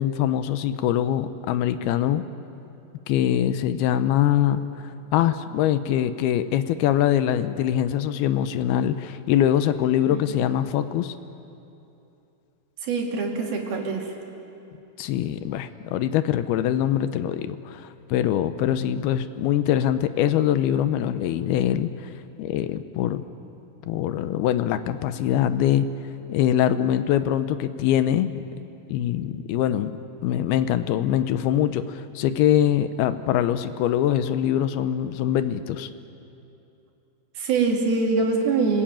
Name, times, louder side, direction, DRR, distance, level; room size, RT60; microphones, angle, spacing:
voice 1, 0.0-2.2 3.1-11.2 15.0-23.2 23.9-25.9 26.3-28.4 28.9-29.9 30.2-35.9, left 11 dB, 80° left, 11 dB, 2.7 m, -23 dB
voice 2, 10.1-10.5 12.8-14.1 37.4-38.8, right 4 dB, 70° right, 0 dB, 4.4 m, -24 dB
27.0 x 19.5 x 8.9 m, 2.8 s
omnidirectional pair, 4.5 m